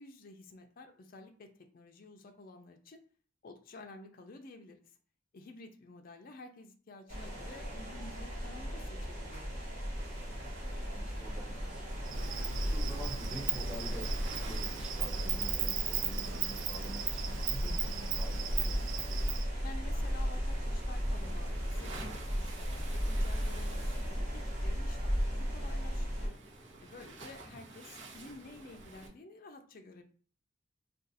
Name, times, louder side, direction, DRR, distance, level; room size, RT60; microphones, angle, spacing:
voice 1, 0.0-3.0 3.4-4.9 5.3-9.5 19.6-26.4 26.8-30.0, left 2 dB, 50° left, 5 dB, 0.4 m, -51 dB
sound 1, 7.1-26.3, equal, 40° right, 1.1 m, -36 dB
Waves surf, 9.9-29.1, right 2 dB, 65° right, 0.9 m, -50 dB
voice 2, 10.9-18.8, right 1 dB, 5° right, -1 dB, 0.6 m, -48 dB
Insect, 12.0-19.4, right 9 dB, 85° right, 0.4 m, -37 dB
2.5 x 2.3 x 3.9 m, 0.43 s
head